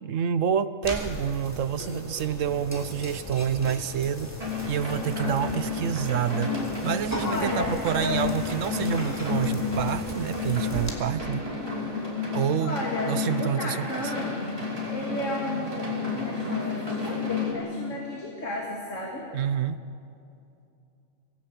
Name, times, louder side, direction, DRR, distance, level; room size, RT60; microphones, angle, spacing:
voice 1, 0.0-4.3 4.7-6.5 6.8-11.5 12.3-14.1 19.3-19.8, right 8 dB, 80° right, 13 dB, 1.2 m, -28 dB
sound 1, 0.8-10.9, equal, 10° left, 3.2 m, -38 dB
sound 2, 4.4-17.5, left 4 dB, 30° right, 5.4 m, -31 dB
voice 2, 7.2-8.2 12.6-13.1 13.4-14.5 14.9-19.3, left 2 dB, 75° left, -1 dB, 2.9 m, -33 dB
25.5 x 18.0 x 8.5 m, 2.5 s
omnidirectional pair, 1.3 m